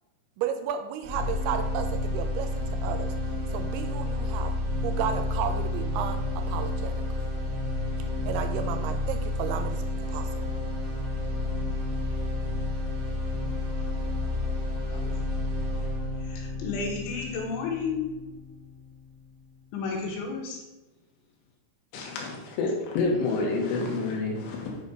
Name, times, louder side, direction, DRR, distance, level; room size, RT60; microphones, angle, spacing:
voice 1, 0.4-3.1 3.5-4.5 4.8-6.9 8.3-9.8 10.1-10.5, right 8 dB, 85° right, 2.8 m, -33 dB
sound 1, 1.0-19.0, left 2 dB, 25° right, 2.1 m, -30 dB
voice 2, 14.9-15.4 16.2-18.0 19.7-20.6, left 5 dB, 75° left, 3.7 m, -32 dB
voice 3, 21.9-24.8, left 3 dB, 90° left, 3.9 m, -28 dB
9.7 x 4.1 x 5.2 m
omnidirectional pair, 5.5 m